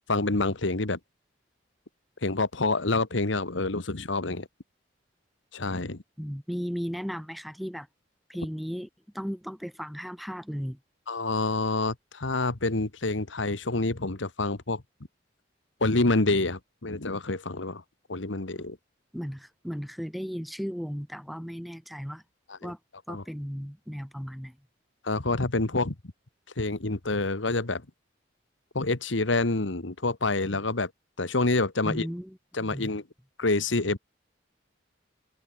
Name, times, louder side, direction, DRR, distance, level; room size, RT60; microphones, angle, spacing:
voice 1, 0.1-1.0 2.2-4.5 5.5-6.0 11.1-14.8 15.8-17.8 18.1-18.8 22.5-22.7 23.1-23.2 25.0-25.9 26.6-27.8 28.7-30.9 31.2-32.1 32.5-33.0 33.4-34.0, left 2 dB, 80° left, 1.7 m, -27 dB
voice 2, 6.2-7.9 8.3-8.9 9.1-10.8 19.1-22.2 22.6-22.8 23.1-24.6 31.8-32.9, equal, ahead, 0.6 m, -35 dB
head